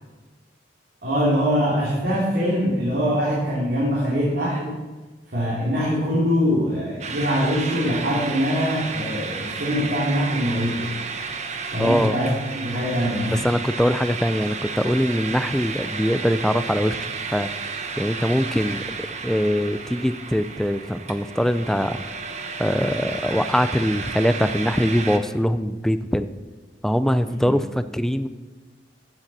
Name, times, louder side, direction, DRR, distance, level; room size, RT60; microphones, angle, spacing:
voice 1, 1.0-4.7 5.3-10.9 11.7-12.3 12.5-13.5 27.4-27.5, equal, 60° right, -7 dB, 2.9 m, -23 dB
sound 1, 7.0-25.2, right 5 dB, 40° right, 0.9 m, -32 dB
voice 2, 11.8-12.2 13.3-17.5 18.0-22.0 22.6-26.3 26.8-28.3, equal, 5° left, 12 dB, 0.4 m, -22 dB
15.0 x 7.9 x 4.2 m, 1.3 s
head